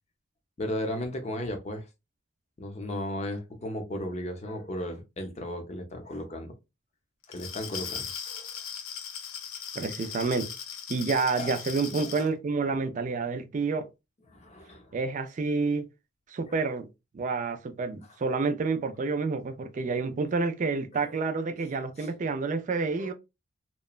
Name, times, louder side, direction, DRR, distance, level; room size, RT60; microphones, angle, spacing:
voice 1, 0.6-1.9 2.6-6.6 7.3-8.5 11.4-11.5 12.2-12.3 14.3-15.0 22.0-22.1 23.0-23.1, left 1 dB, 30° left, 0.5 m, -35 dB
Glass, 7.2-12.3, left 7 dB, 85° left, 0.6 m, -38 dB
voice 2, 9.8-10.5 10.9-13.9 14.9-15.9 16.3-16.9 17.1-23.1, right 4 dB, 35° right, 0.3 m, -29 dB
2.9 x 2.1 x 2.3 m
head